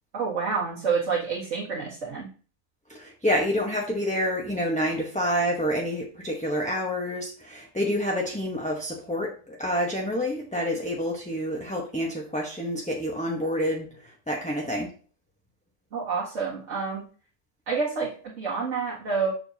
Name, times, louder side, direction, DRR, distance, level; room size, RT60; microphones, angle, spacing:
voice 1, 0.1-2.3 15.9-17.0 17.7-19.3, right 5 dB, 60° right, -6 dB, 2.1 m, -28 dB
voice 2, 2.9-14.9, equal, 5° left, -1 dB, 0.9 m, -28 dB
7.1 x 6.8 x 2.8 m, 0.39 s
omnidirectional pair, 1.4 m